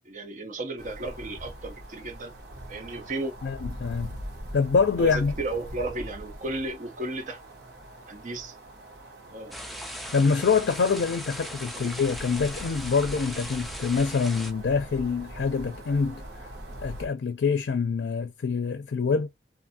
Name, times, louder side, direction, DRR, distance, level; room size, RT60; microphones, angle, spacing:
voice 1, 0.0-2.3 2.7-3.3 5.0-7.4 8.1-8.6 9.3-9.6 11.7-11.9, right 2 dB, 45° right, 0.7 m, -34 dB
sound 1, 0.8-17.1, equal, 75° right, 1.1 m, -42 dB
voice 2, 3.4-4.1 4.5-5.3 10.1-16.2 16.8-19.3, left 5 dB, 80° left, 0.4 m, -25 dB
sound 2, 9.5-14.5, equal, ahead, 0.3 m, -38 dB
2.6 x 2.6 x 2.6 m
head